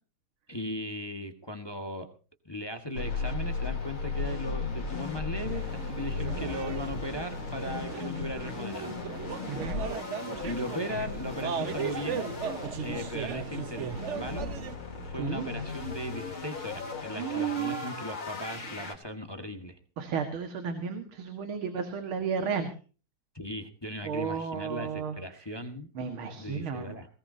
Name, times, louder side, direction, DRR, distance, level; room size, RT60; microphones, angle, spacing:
voice 1, 0.5-2.1 2.4-8.9 10.4-12.3 12.8-14.6 15.0-19.8 23.3-25.9 26.4-27.1, left 1 dB, 15° left, 6 dB, 1.5 m, -38 dB
sound 1, 2.9-18.9, left 4 dB, 75° left, 4.2 m, -36 dB
sound 2, 5.5-14.8, right 8 dB, 60° right, 0.7 m, -37 dB
voice 2, 9.5-9.8 15.1-15.5 17.1-17.9 18.6-18.9 20.0-22.7 24.0-25.4 26.0-27.0, right 6 dB, 80° right, 7 dB, 2.5 m, -33 dB
20.0 x 18.0 x 2.8 m, 0.36 s
omnidirectional pair, 2.3 m